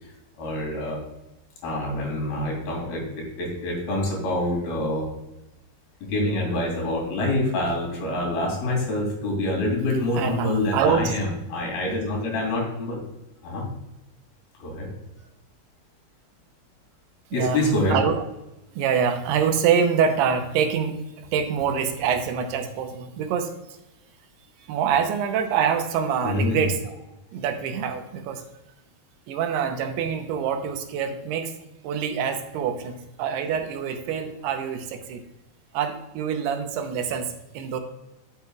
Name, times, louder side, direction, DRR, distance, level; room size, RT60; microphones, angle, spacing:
voice 1, 0.4-1.0 1.6-5.1 6.1-13.0 13.4-13.7 14.6-14.9 17.3-18.0 26.2-26.6, left 1 dB, 65° left, -1 dB, 4.4 m, -26 dB
voice 2, 10.1-11.1 17.3-18.2 18.8-23.5 24.7-27.0 27.3-28.4 29.3-31.5 31.8-35.2 35.7-37.8, right 7 dB, 85° right, 6 dB, 2.7 m, -25 dB
12.0 x 7.5 x 2.3 m, 0.94 s
omnidirectional pair, 4.8 m